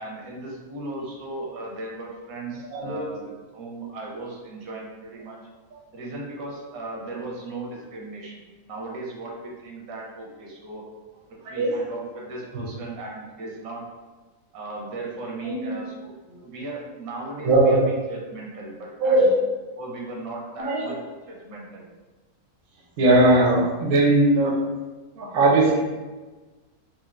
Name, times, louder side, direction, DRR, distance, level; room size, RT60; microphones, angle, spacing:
voice 1, 0.0-5.4 5.9-10.8 11.3-13.8 14.5-19.2 19.8-21.0 21.3-21.9, right 2 dB, 80° right, -2 dB, 1.1 m, -37 dB
voice 2, 2.7-3.2 5.7-5.8 11.4-11.7 15.4-15.7 17.4-17.8 19.0-19.3 20.6-20.9 23.0-24.5 25.1-25.8, right 2 dB, 55° right, -2 dB, 0.6 m, -19 dB
3.1 x 2.4 x 2.4 m, 1.3 s
omnidirectional pair, 1.5 m